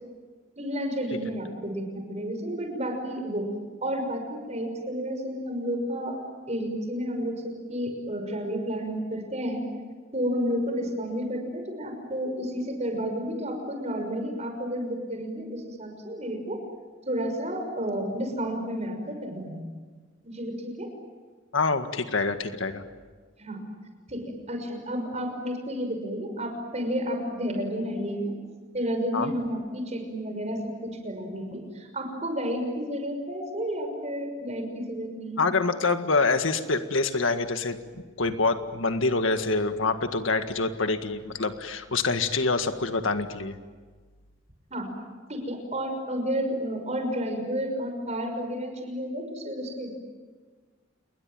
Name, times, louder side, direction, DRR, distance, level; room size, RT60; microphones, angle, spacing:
voice 1, 0.6-3.5 3.8-6.2 6.5-9.7 10.1-16.6 17.1-19.7 20.2-20.9 23.4-23.6 24.1-28.3 28.7-35.4 44.7-44.9 45.3-49.9, equal, 35° right, 5 dB, 6.1 m, -31 dB
voice 2, 21.5-22.8 29.1-29.3 35.4-37.8 38.2-43.6, left 3 dB, 90° left, 8 dB, 1.9 m, -26 dB
29.0 x 21.5 x 9.2 m, 1.5 s
head